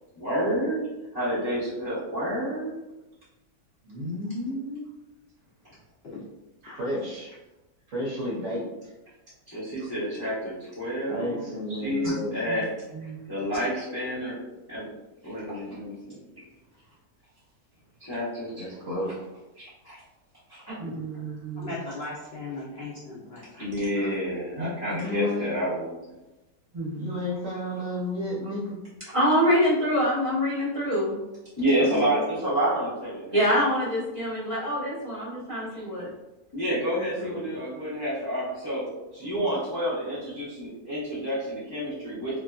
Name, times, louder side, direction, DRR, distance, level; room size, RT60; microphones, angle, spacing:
voice 1, 0.2-0.8 1.1-2.7 9.5-12.7 13.3-14.4 14.7-14.9 15.2-15.9 18.0-19.1 19.6-20.0 20.5-20.8 23.6-26.1 31.6-33.4 36.5-38.9 39.1-42.4, equal, 20° left, -10 dB, 0.6 m, -29 dB
voice 2, 3.8-4.9 6.6-7.3 7.9-8.6 11.1-12.3 18.6-19.1 24.6-25.5 27.0-28.8 37.2-37.4, left 1 dB, 60° right, -5 dB, 0.9 m, -32 dB
voice 3, 20.7-21.7 26.7-27.1 29.1-31.2 31.8-32.1 33.3-36.1 39.2-39.3, equal, 25° right, -9 dB, 0.8 m, -26 dB
voice 4, 21.6-23.4, left 3 dB, 80° left, -6 dB, 0.5 m, -37 dB
2.7 x 2.4 x 2.2 m, 1.0 s
omnidirectional pair, 1.7 m